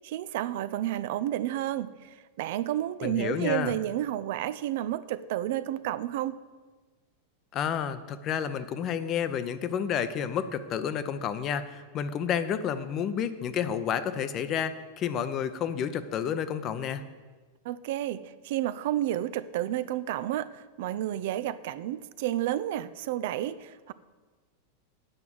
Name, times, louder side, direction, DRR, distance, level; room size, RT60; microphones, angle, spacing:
voice 1, 0.0-6.4 17.7-23.9, right 13 dB, 50° right, 15 dB, 0.3 m, -31 dB
voice 2, 3.0-3.7 7.5-17.0, left 8 dB, 35° left, 12 dB, 0.6 m, -30 dB
8.9 x 5.9 x 7.7 m, 1.4 s
figure-of-eight pair, 90°, 0 cm